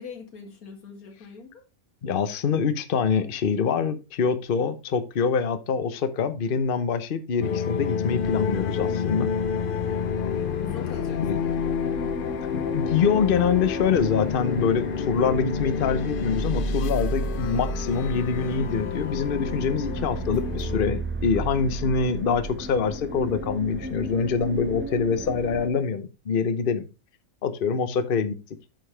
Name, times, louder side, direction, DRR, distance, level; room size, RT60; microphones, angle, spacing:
voice 1, 0.0-1.6 10.6-12.3, left 4 dB, 90° left, 2.3 m, -43 dB
voice 2, 2.0-9.3 11.2-11.4 12.5-26.9 27.4-28.3, left 6 dB, 45° left, 0.9 m, -25 dB
sound 1, 7.4-20.8, left 7 dB, 70° left, 0.5 m, -29 dB
sound 2, 8.2-25.7, right 2 dB, 10° right, 0.6 m, -34 dB
9.3 x 6.9 x 3.3 m
omnidirectional pair, 1.5 m